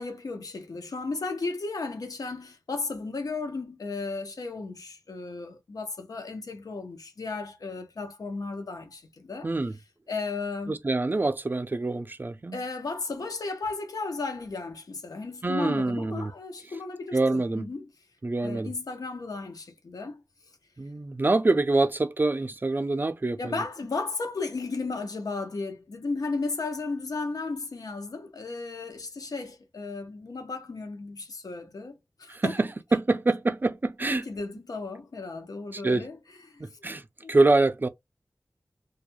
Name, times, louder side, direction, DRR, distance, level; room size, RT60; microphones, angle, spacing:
voice 1, 0.0-9.5 10.1-10.8 12.5-17.9 18.4-20.2 23.4-32.5 34.1-36.2 36.5-36.8 37.2-37.3, left 3 dB, 85° left, 0.6 m, -34 dB
voice 2, 9.4-9.7 10.7-12.6 15.4-16.3 17.1-17.7 18.2-18.7 20.8-23.6 32.3-34.2 35.7-36.1 36.6-37.0 37.3-37.9, right 2 dB, 35° right, 0.3 m, -25 dB
2.3 x 2.1 x 2.9 m
wide cardioid pair, 65°, 6 cm